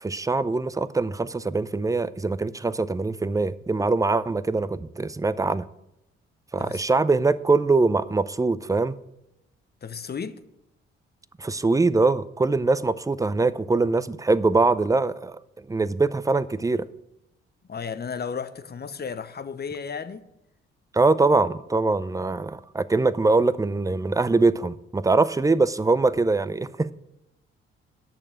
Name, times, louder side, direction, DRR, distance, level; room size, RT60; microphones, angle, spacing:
voice 1, 0.0-5.6 6.5-9.0 11.4-15.4 15.7-16.9 20.9-26.9, right 3 dB, 10° right, 0.5 m, -23 dB
voice 2, 9.8-10.4 17.7-20.3, left 6 dB, 35° left, 0.8 m, -34 dB
8.8 x 6.7 x 7.4 m
hypercardioid pair, 45°, 29 cm